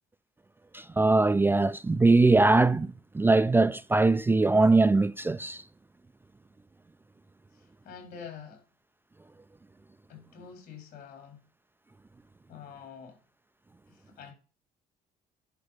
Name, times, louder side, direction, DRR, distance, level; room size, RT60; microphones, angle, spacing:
voice 1, 0.7-5.6, right 3 dB, 15° right, 0.4 m, -22 dB
voice 2, 7.5-8.6 10.1-11.4 12.5-13.2 13.9-14.3, left 7 dB, 70° left, 4.5 m, -46 dB
10.5 x 5.0 x 5.2 m
cardioid pair, 110°, 17 cm